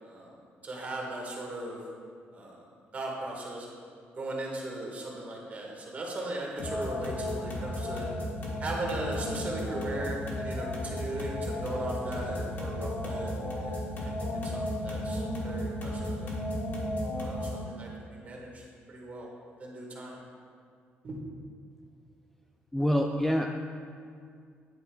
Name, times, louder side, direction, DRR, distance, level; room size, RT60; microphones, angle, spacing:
voice 1, 0.0-1.8 2.3-2.6 2.9-3.7 4.2-8.1 8.6-16.4 17.2-19.3 19.6-20.2 21.0-21.2, right 1 dB, 35° right, -2 dB, 1.6 m, -38 dB
sound 1, 6.6-17.7, left 1 dB, 50° left, 1.7 m, -34 dB
voice 2, 22.7-23.5, equal, 5° left, 2 dB, 0.3 m, -26 dB
9.6 x 8.3 x 2.3 m, 2.2 s
cardioid pair, 115°, 4 cm